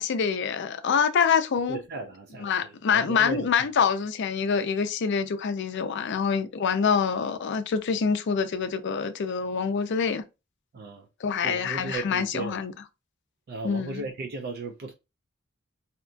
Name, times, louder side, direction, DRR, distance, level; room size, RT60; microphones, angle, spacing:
voice 1, 0.0-1.8 2.4-10.2 11.2-12.7 13.6-14.0, left 6 dB, 55° left, 0.4 m, -26 dB
voice 2, 1.7-3.7 10.7-11.1 11.4-12.6 13.5-14.9, right 3 dB, 50° right, 0.4 m, -36 dB
2.8 x 2.3 x 2.4 m
head